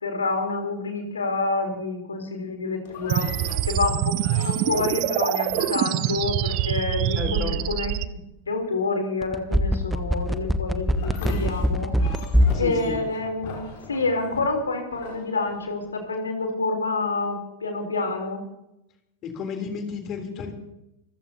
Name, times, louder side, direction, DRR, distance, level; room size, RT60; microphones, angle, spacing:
voice 1, 0.0-3.3 3.6-7.9 8.5-11.9 12.6-18.4, left 3 dB, 75° left, 3 dB, 3.8 m, -28 dB
sound 1, 2.9-7.2 10.9-16.0, left 4 dB, 50° left, 4.2 m, -40 dB
sound 2, 3.1-8.1, right 13 dB, 40° right, 0.8 m, -25 dB
voice 2, 7.2-7.6 12.5-13.0 19.2-20.5, left 5 dB, 35° left, 3 dB, 3.5 m, -32 dB
sound 3, 9.2-12.6 12.9-13.0, equal, 5° right, 1.3 m, -21 dB
26.5 x 15.5 x 2.9 m, 0.86 s
figure-of-eight pair, 90°, 0 cm